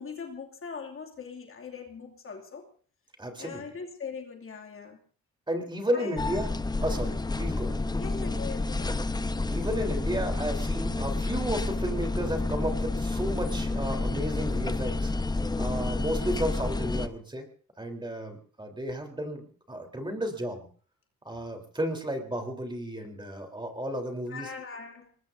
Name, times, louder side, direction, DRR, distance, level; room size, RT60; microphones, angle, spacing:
voice 1, 0.0-2.7 3.4-5.0 5.9-6.2 8.0-9.0 24.3-25.1, left 5 dB, 45° left, 2 dB, 2.6 m, -41 dB
voice 2, 3.2-3.6 5.5-6.5 6.8-7.8 9.5-15.1 15.6-17.5 17.8-20.7 21.2-24.5, equal, 15° right, 4 dB, 3.8 m, -33 dB
sound 1, 6.2-17.1, left 2 dB, 15° left, 0.8 m, -29 dB
23.5 x 20.0 x 2.7 m, 0.42 s
cardioid pair, 90°, 30 cm